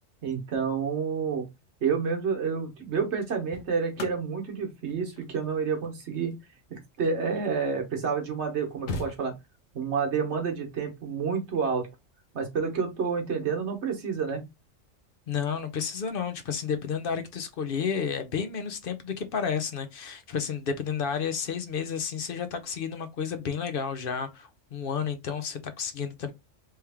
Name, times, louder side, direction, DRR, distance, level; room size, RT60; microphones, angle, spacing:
voice 1, 0.2-1.5 1.8-6.4 6.7-9.3 9.7-11.9 12.3-14.4, right 5 dB, 60° right, 1.3 m, -29 dB
sound 1, 1.9-2.2 3.1-7.7 8.2-8.3 8.5-9.8 11.4-11.7, left 3 dB, 75° left, 1.2 m, -42 dB
voice 2, 15.3-26.3, left 6 dB, 55° left, 0.7 m, -31 dB
3.5 x 2.9 x 3.4 m
omnidirectional pair, 1.4 m